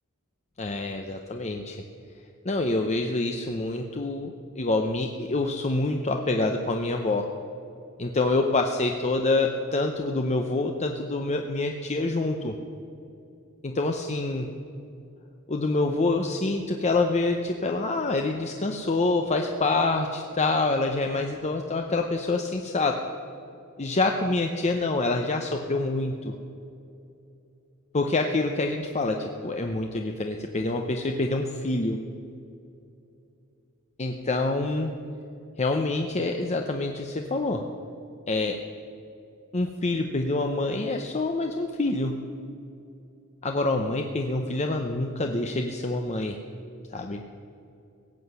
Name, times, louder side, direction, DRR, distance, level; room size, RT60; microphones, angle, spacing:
voice 1, 0.6-1.8 2.4-7.3 8.0-12.6 13.6-14.5 15.5-23.0 23.8-26.3 27.9-32.0 34.0-34.9 35.6-37.6 38.3-38.6 39.5-42.2 43.4-46.4 46.9-47.2, left 2 dB, 30° left, 4 dB, 0.7 m, -26 dB
17.0 x 7.8 x 8.1 m, 2.6 s
head